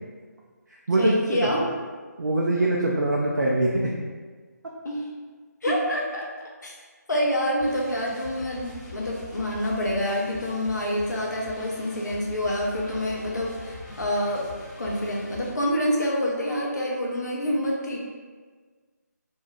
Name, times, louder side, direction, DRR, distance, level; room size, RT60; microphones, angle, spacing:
voice 1, 1.0-1.6 4.8-5.1 5.6-6.3 6.6-6.7 7.1-14.5 14.8-18.0, equal, 75° left, -2 dB, 0.7 m, -27 dB
voice 2, 2.2-3.9 5.7-5.8, right 2 dB, 80° right, -4 dB, 0.4 m, -23 dB
sound 1, 7.6-15.5, left 2 dB, 30° left, 0.9 m, -42 dB
2.6 x 2.3 x 3.0 m, 1.5 s
figure-of-eight pair, 165°, 10 cm